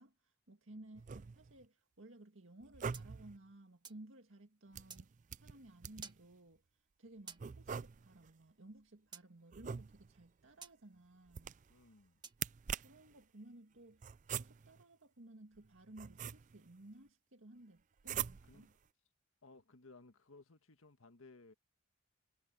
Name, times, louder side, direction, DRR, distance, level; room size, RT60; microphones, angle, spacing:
voice 1, 0.0-5.1 5.4-6.6 7.0-11.6 12.7-18.7, right 1 dB, 70° right, 1.9 m, -57 dB
Writing Checkmarks with Different Tools, 0.9-1.6 2.6-3.4 4.7-6.2 7.4-8.3 9.5-10.3 11.3-11.8 12.3-13.1 14.0-14.8 15.6-16.7 18.0-18.7, right 8 dB, 35° right, 0.4 m, -44 dB
sound 1, 2.9-4.1 4.9-5.0 6.0-6.2 7.3-7.4 9.1-9.3 10.6-10.8 12.2-12.4, right 6 dB, 20° right, 1.7 m, -52 dB
voice 2, 11.7-12.2 18.5-18.8 19.4-21.5, left 3 dB, 85° left, 1.6 m, -60 dB
head